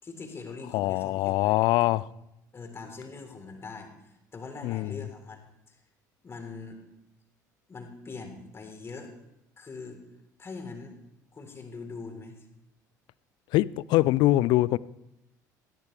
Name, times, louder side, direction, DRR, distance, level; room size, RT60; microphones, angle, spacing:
voice 1, 0.0-2.2 2.5-3.9 4.3-5.4 5.7-5.8 6.2-6.8 7.7-9.1 9.6-10.0 10.4-10.9 11.3-12.4, left 4 dB, 25° left, 3.9 m, -42 dB
voice 2, 0.7-2.1 4.6-5.0 13.5-14.8, left 17 dB, 50° left, 0.5 m, -23 dB
20.0 x 16.5 x 3.4 m
figure-of-eight pair, 60°, 10 cm